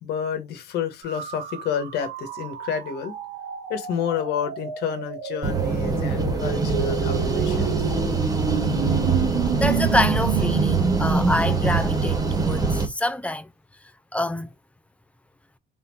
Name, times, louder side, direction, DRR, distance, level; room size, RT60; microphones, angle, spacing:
voice 1, 0.0-3.1 3.7-7.7, left 8 dB, 75° left, 1.3 m, -29 dB
sound 1, 1.0-11.3, right 6 dB, 85° right, 1.6 m, -29 dB
sound 2, 5.4-12.9, right 4 dB, 20° right, 1.4 m, -23 dB
voice 2, 9.6-13.5 14.1-14.5, left 1 dB, 10° left, 0.5 m, -26 dB
4.0 x 3.7 x 2.6 m
cardioid pair, 110°, 17 cm